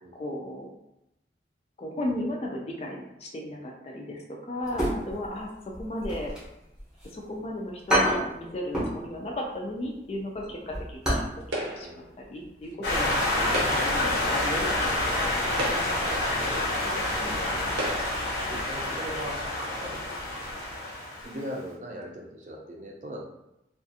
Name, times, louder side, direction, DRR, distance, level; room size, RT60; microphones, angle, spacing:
voice 1, 0.1-0.7 1.8-5.5 5.8-6.3 7.1-11.2 11.8-11.9 12.3-13.2 13.7-15.3 15.6-15.9 17.4-17.7, left 1 dB, 35° left, 0 dB, 0.3 m, -35 dB
sound 1, 4.6-5.4 5.7-7.1 7.5-7.6 7.9-9.0 9.3-9.5 9.9-11.4 11.6-11.7 12.2-12.5 12.7-12.8, equal, 5° right, 0.7 m, -28 dB
sound 2, 11.5-12.0 13.4-14.1 14.9-15.0 15.5-16.2 17.0-17.1 17.7-18.3, right 1 dB, 80° right, 0.7 m, -33 dB
voice 2, 11.8-12.1 12.8-14.1 16.4-18.1 18.5-20.0 21.2-23.3, equal, 45° right, 0 dB, 0.5 m, -40 dB
sound 3, 12.8-21.5, left 1 dB, 70° left, 0.7 m, -28 dB
2.4 x 2.4 x 2.6 m, 0.87 s
head